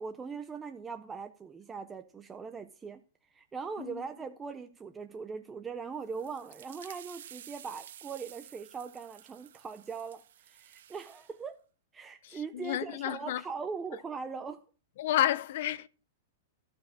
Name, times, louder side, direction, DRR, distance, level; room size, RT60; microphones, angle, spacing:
voice 1, 0.0-3.0 3.3-11.6 11.9-14.6, right 5 dB, 10° right, 0.5 m, -40 dB
sound 1, 5.9-11.4, right 11 dB, 70° right, 0.6 m, -52 dB
voice 2, 12.2-13.4 15.0-15.9, left 12 dB, 50° left, 0.6 m, -31 dB
13.0 x 4.9 x 7.3 m
supercardioid pair, 170°, 0 cm